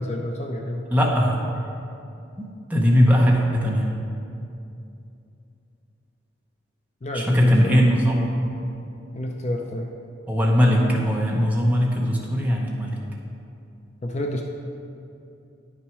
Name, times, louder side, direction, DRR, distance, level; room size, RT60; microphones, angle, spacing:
voice 1, 0.0-0.8 7.0-7.9 9.1-9.9 14.0-14.4, left 1 dB, 35° left, 2 dB, 0.5 m, -29 dB
voice 2, 0.9-1.4 2.4-3.9 7.1-8.5 10.3-13.0, equal, 10° right, -2 dB, 0.9 m, -20 dB
9.9 x 6.0 x 4.6 m, 2.6 s
head